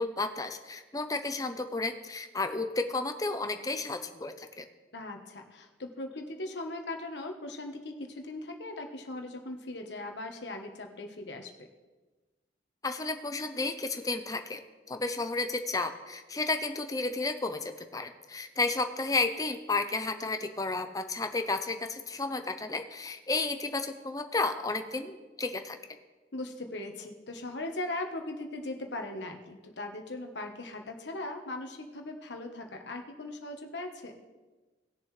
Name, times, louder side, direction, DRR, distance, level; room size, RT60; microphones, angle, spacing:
voice 1, 0.0-4.7 12.8-14.6 14.9-25.8, left 3 dB, 20° left, 7 dB, 0.6 m, -32 dB
voice 2, 4.9-11.7 26.3-34.2, left 2 dB, 80° left, 4 dB, 1.2 m, -39 dB
18.5 x 6.8 x 3.3 m, 1.2 s
head